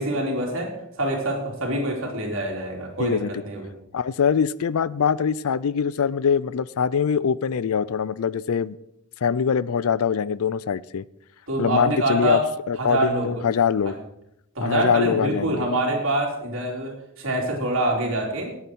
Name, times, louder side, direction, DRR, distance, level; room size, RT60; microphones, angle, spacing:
voice 1, 0.0-3.2 3.4-3.7 11.5-12.4 12.8-13.3 14.6-18.5, right 1 dB, 60° right, -1 dB, 3.6 m, -25 dB
voice 2, 3.0-3.3 3.9-8.8 9.2-11.0 11.6-12.4 12.7-13.9 14.6-15.7, left 7 dB, 75° left, 20 dB, 0.4 m, -23 dB
18.0 x 8.5 x 4.6 m, 0.81 s
head